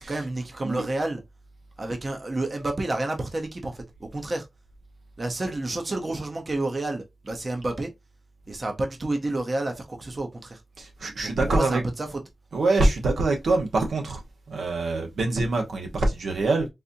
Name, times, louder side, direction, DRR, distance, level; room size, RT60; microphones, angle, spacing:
voice 1, 0.1-1.2 1.8-4.5 5.2-7.9 8.5-10.6 11.2-12.2, right 2 dB, 40° right, 0.7 m, -30 dB
voice 2, 10.8-11.8 12.5-14.2 14.5-16.7, right 2 dB, 90° right, 1.0 m, -24 dB
4.1 x 2.6 x 2.6 m
wide cardioid pair, 90°, 0 cm